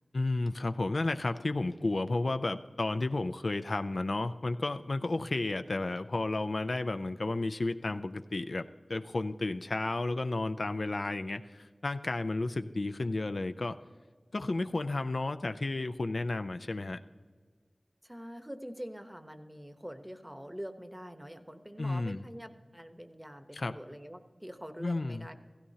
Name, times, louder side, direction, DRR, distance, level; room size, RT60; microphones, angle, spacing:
voice 1, 0.1-8.6 8.9-13.8 14.3-17.0 21.8-22.2 23.5-23.8 24.8-25.3, left 2 dB, 70° left, 9 dB, 0.4 m, -32 dB
voice 2, 18.0-25.3, equal, 10° right, 7 dB, 1.0 m, -45 dB
16.0 x 15.5 x 2.8 m, 1.5 s
wide cardioid pair, 45°, 0 cm